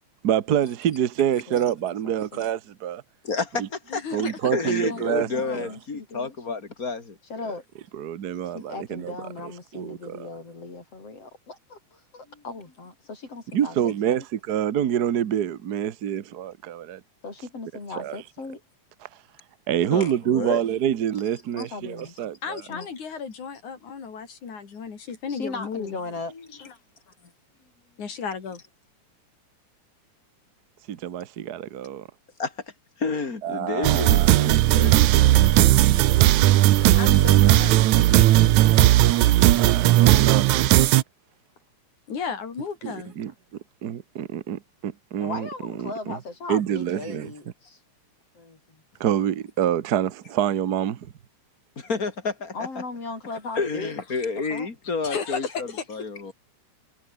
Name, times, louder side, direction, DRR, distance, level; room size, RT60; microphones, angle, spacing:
voice 1, 0.2-3.0 3.6-3.7 4.1-5.3 5.5-5.7 7.9-9.1 9.4-10.3 13.5-17.0 18.0-18.2 19.7-22.6 30.9-32.1 33.4-34.5 34.9-35.0 39.5-40.5 42.8-43.3 43.8-46.2 46.5-47.3 49.0-51.1, right 10 dB, 60° right, 1.0 m, -26 dB
voice 2, 2.0-2.4 4.8-6.3 7.3-7.6 8.5-14.2 17.2-18.6 21.6-22.2 22.7-22.9 25.3-26.3 45.2-47.8 48.3-48.8 52.5-53.9 54.5-54.7, left 3 dB, 55° left, 6.5 m, -37 dB
voice 3, 3.2-4.2 4.5-7.2 12.3-12.4 19.9-20.6 26.3-26.4 32.4-32.5 33.0-35.5 51.8-52.7 53.5-56.3, left 4 dB, 30° left, 3.3 m, -30 dB
voice 4, 3.9-4.5 22.4-26.0 26.6-26.7 28.0-28.6 36.9-37.9 40.2-40.4 42.1-43.1 55.0-55.9, left 6 dB, 80° left, 5.1 m, -34 dB
sound 1, 33.8-41.0, right 15 dB, 80° right, 2.3 m, -17 dB
omnidirectional pair, 3.4 m